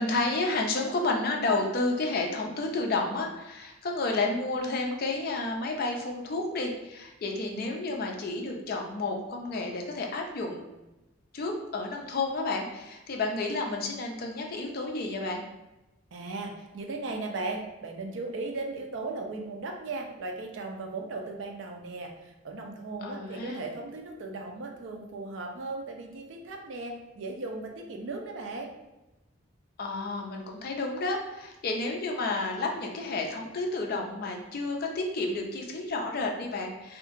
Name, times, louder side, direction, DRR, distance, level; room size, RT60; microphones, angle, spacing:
voice 1, 0.0-10.6 11.3-15.4 23.0-23.6 29.8-37.0, left 2 dB, 50° left, 1 dB, 0.4 m, -31 dB
voice 2, 16.1-28.7, right 3 dB, 65° right, 2 dB, 0.4 m, -37 dB
2.8 x 2.4 x 2.5 m, 1.0 s
head